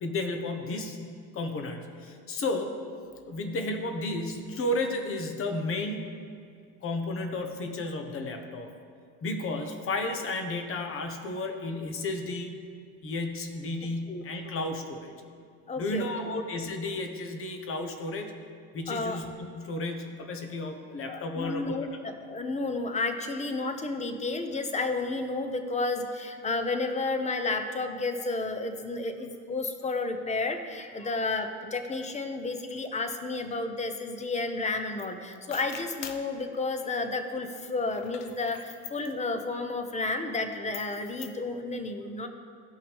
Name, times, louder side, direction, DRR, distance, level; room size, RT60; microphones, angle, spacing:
voice 1, 0.0-1.0 1.3-2.7 3.2-6.1 6.8-8.7 9.2-12.6 13.0-15.1 15.8-18.3 18.7-21.8, left 2 dB, 35° left, 5 dB, 1.3 m, -33 dB
voice 2, 15.7-16.1 18.9-19.2 21.1-42.3, left 3 dB, 20° left, 7 dB, 1.0 m, -31 dB
sound 1, 35.0-35.1 35.3-36.3 37.8-39.1 40.7-41.4, left 10 dB, 75° left, 0.9 m, -44 dB
17.0 x 5.7 x 3.6 m, 2.2 s
supercardioid pair, 105°, 36 cm